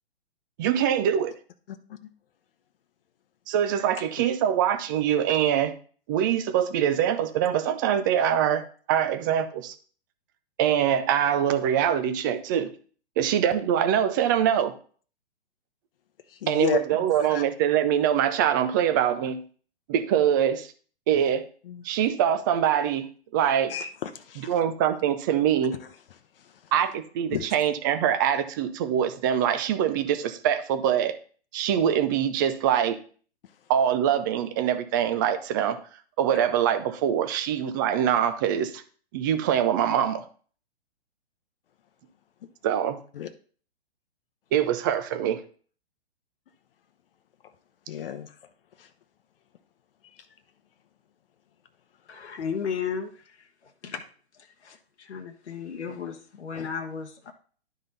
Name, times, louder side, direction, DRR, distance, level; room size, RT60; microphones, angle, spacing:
voice 1, 0.6-1.3 3.5-5.7 6.1-9.7 10.6-12.7 13.2-14.7 16.5-19.4 19.9-20.7 21.1-21.5 21.8-23.1 23.3-23.7 24.4-25.8 26.7-31.1 31.5-33.0 33.7-35.8 36.2-38.8 39.1-40.3 42.6-43.0 44.5-45.4, right 9 dB, 20° right, 10 dB, 0.4 m, -24 dB
voice 2, 16.4-16.8 17.3-17.4 21.1-21.2 21.7-21.8 23.7-24.5 27.3-27.5 43.2-43.3 47.9-48.3, left 9 dB, 55° left, 8 dB, 0.8 m, -31 dB
voice 3, 52.1-54.0 54.6-57.3, left 6 dB, 90° left, 3 dB, 1.1 m, -34 dB
11.0 x 3.9 x 3.9 m, 0.43 s
hypercardioid pair, 140°, 33 cm